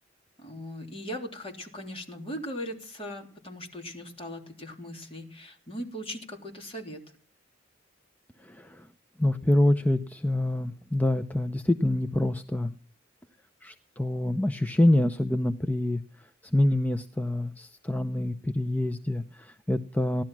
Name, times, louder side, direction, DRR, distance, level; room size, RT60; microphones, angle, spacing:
voice 1, 0.4-7.0, equal, 30° left, 2 dB, 3.5 m, -39 dB
voice 2, 8.4-8.8 9.2-12.7 13.6-16.0 16.5-20.2, left 1 dB, 10° left, 9 dB, 0.6 m, -26 dB
17.5 x 11.5 x 6.0 m, 0.43 s
head